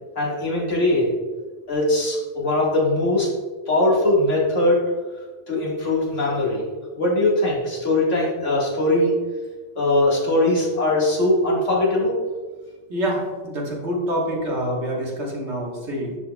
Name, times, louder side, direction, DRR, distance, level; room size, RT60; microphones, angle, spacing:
voice 1, 0.2-1.1 1.7-3.3 3.7-4.8 5.5-6.6 7.0-9.1 9.8-12.2, left 1 dB, 85° left, -4 dB, 2.0 m, -20 dB
voice 2, 12.9-16.2, equal, 70° right, -2 dB, 1.7 m, -26 dB
12.0 x 4.2 x 2.2 m, 1.3 s
omnidirectional pair, 1.2 m